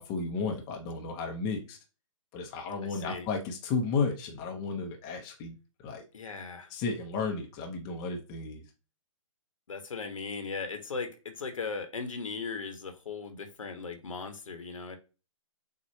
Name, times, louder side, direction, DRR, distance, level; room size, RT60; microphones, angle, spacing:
voice 1, 0.0-1.8 2.3-5.5 5.8-6.0 6.7-8.6, left 4 dB, 25° left, 1 dB, 0.8 m, -33 dB
voice 2, 2.8-3.3 6.1-6.7 9.7-15.0, left 4 dB, 75° left, 6 dB, 1.2 m, -38 dB
6.7 x 2.4 x 2.8 m, 0.31 s
figure-of-eight pair, 135°, 17 cm